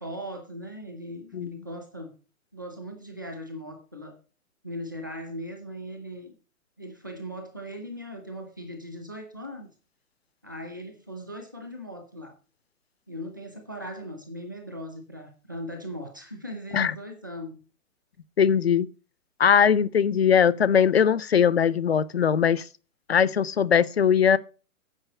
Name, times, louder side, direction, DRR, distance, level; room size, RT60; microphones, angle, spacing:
voice 1, 0.0-2.1 2.5-4.2 4.6-6.3 6.8-9.7 10.4-12.3 13.1-17.6, equal, 15° right, 0.6 m, -39 dB
voice 2, 18.4-18.9 19.4-22.6 23.1-24.4, left 7 dB, 45° left, 0.4 m, -20 dB
9.0 x 5.1 x 7.0 m
hypercardioid pair, 180°, 43 cm